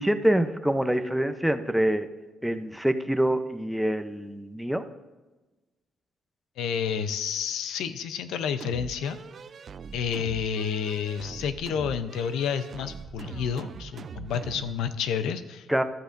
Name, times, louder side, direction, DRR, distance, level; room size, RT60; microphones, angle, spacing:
voice 1, 0.0-2.1 2.4-4.8 15.7-15.8, right 1 dB, 5° right, 9 dB, 0.6 m, -25 dB
voice 2, 6.6-9.2 9.9-15.8, left 7 dB, 85° left, 11 dB, 0.6 m, -30 dB
sound 1, 8.6-14.8, right 6 dB, 50° right, 0.4 m, -42 dB
13.5 x 13.0 x 2.6 m, 1.2 s
cardioid pair, 90°, 0 cm